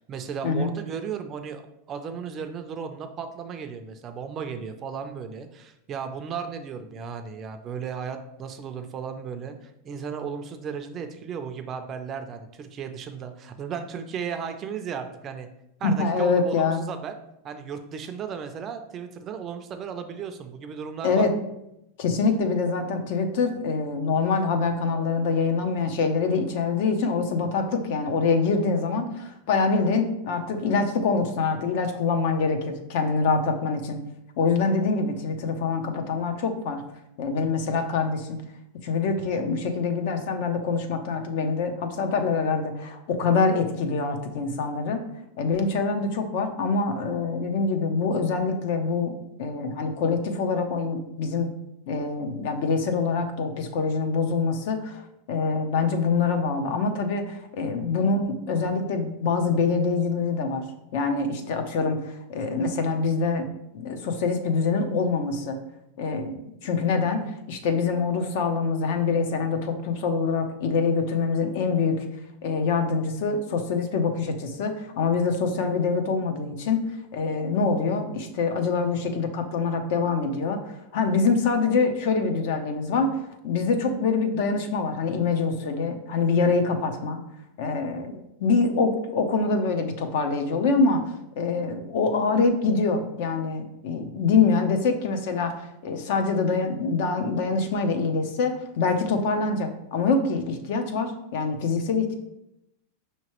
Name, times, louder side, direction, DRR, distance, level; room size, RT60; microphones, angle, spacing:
voice 1, 0.0-1.6 1.9-15.5 15.8-17.1 17.4-21.3, right 6 dB, 30° right, 7 dB, 0.4 m, -35 dB
voice 2, 15.8-16.8 21.0-21.3 22.0-34.0 34.4-36.8 37.2-38.4 38.8-45.0 45.4-51.5 51.9-55.0 55.3-60.6 60.9-63.5 63.7-65.6 66.0-67.2 67.5-72.0 72.4-76.8 77.1-83.2 83.4-87.2 87.6-91.0 91.4-102.1, left 4 dB, 60° left, 6 dB, 0.7 m, -25 dB
5.6 x 2.9 x 3.0 m, 0.84 s
supercardioid pair, 140°, 0 cm